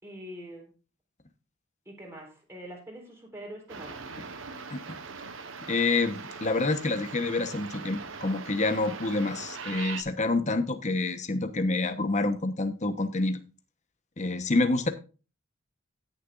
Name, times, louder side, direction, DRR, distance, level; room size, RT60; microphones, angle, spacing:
voice 1, 0.0-0.7 1.9-4.1, equal, 15° right, -1 dB, 4.0 m, -44 dB
sound 1, 3.7-10.0, right 5 dB, 75° right, 1.2 m, -41 dB
voice 2, 5.7-13.4 14.2-14.9, left 3 dB, 35° left, 9 dB, 1.1 m, -27 dB
17.0 x 7.0 x 2.5 m, 0.33 s
head